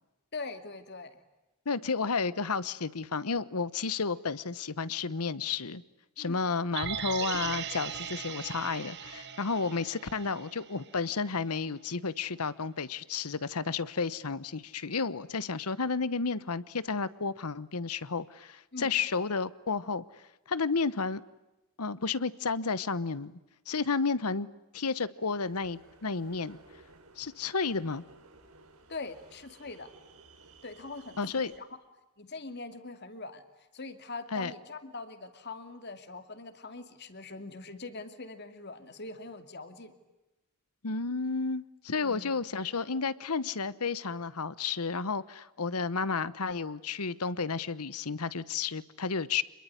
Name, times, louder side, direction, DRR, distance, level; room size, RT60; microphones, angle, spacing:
voice 1, 0.3-1.2 6.2-6.5 18.7-19.0 28.9-29.9 30.6-31.7 32.2-33.4 33.7-39.9 41.9-42.4, left 3 dB, 50° left, 9 dB, 2.6 m, -42 dB
voice 2, 1.7-5.8 6.2-20.0 20.5-21.2 21.8-23.4 23.7-24.5 24.7-26.6 27.2-28.0 31.2-31.5 34.3-34.5 40.8-49.4, left 4 dB, 90° left, 17 dB, 1.1 m, -32 dB
sound 1, 6.7-10.9 11.3-11.4, right 8 dB, 50° right, 2.0 m, -39 dB
sound 2, 25.5-31.6, right 3 dB, 75° right, 4.4 m, -57 dB
27.5 x 22.5 x 9.8 m, 0.98 s
head